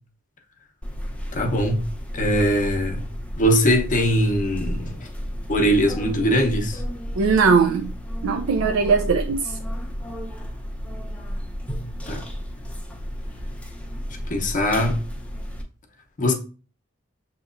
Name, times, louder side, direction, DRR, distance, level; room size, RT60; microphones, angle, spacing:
sound 1, 0.8-15.6, equal, 5° left, 0.6 m, -32 dB
voice 1, 1.3-1.8 2.1-3.0 3.4-5.0 5.5-6.8 12.1-12.2 14.3-15.0 16.2-16.3, equal, 40° left, 0.8 m, -21 dB
voice 2, 7.2-7.9 8.2-9.6, right 5 dB, 80° right, 0.4 m, -19 dB
7.0 x 2.8 x 2.5 m
head